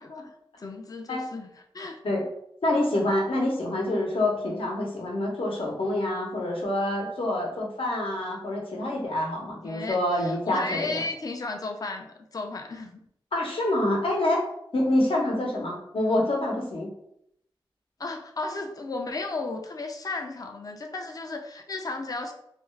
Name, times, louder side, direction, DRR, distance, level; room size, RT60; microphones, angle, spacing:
voice 1, 0.0-2.0 9.6-12.9 18.0-22.3, left 3 dB, 45° left, 5 dB, 0.3 m, -34 dB
voice 2, 2.6-11.0 13.3-14.4 14.7-16.9, left 1 dB, 90° left, -1 dB, 0.7 m, -26 dB
2.4 x 2.2 x 3.1 m, 0.73 s
wide cardioid pair, 60°, 9 cm